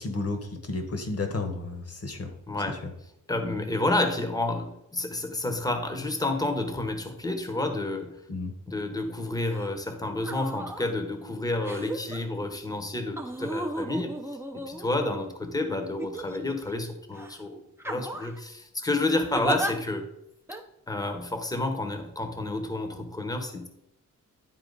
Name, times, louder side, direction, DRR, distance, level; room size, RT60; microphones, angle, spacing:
voice 1, 0.0-2.3 2.7-2.9 8.3-8.6, left 3 dB, 50° left, 5 dB, 1.4 m, -32 dB
voice 2, 3.3-8.1 8.7-14.1 14.5-17.6 17.8-20.0 20.9-23.7, left 2 dB, 10° left, 6 dB, 1.1 m, -30 dB
sound 1, 9.5-9.7 10.2-10.8 11.6-12.2 13.2-15.2 16.0-16.7 17.1-17.3 17.8-18.4 19.3-19.7 20.5-20.6, right 1 dB, 10° right, 0.8 m, -34 dB
10.5 x 4.2 x 4.0 m, 0.82 s
wide cardioid pair, 95°, 32 cm